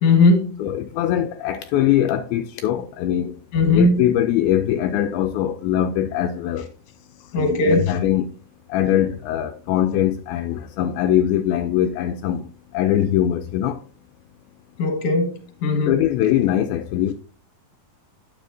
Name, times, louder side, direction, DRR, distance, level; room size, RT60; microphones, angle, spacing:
voice 1, 0.0-0.5 3.5-4.0 7.3-7.9 14.8-16.0, left 3 dB, 55° left, 2.0 m, -18 dB
voice 2, 0.6-3.4 3.7-6.7 7.3-8.3 8.7-13.8 15.9-17.1, left 11 dB, 80° left, 2.3 m, -22 dB
9.6 x 7.0 x 2.7 m
omnidirectional pair, 4.5 m